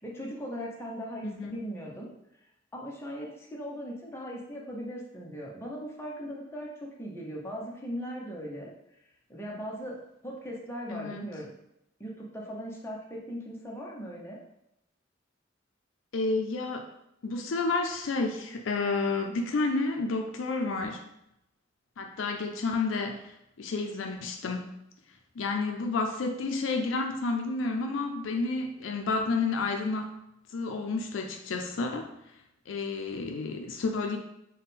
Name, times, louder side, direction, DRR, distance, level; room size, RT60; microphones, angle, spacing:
voice 1, 0.0-2.1 2.7-8.7 9.3-10.0 10.2-11.5 12.0-14.4, equal, 15° left, -3 dB, 0.7 m, -39 dB
voice 2, 1.2-1.6 10.9-11.3 16.1-16.9 17.2-21.0 22.0-24.7 25.4-30.2 30.5-32.1 32.7-34.2, left 3 dB, 75° left, 3 dB, 0.4 m, -30 dB
3.6 x 2.2 x 4.1 m, 0.84 s
head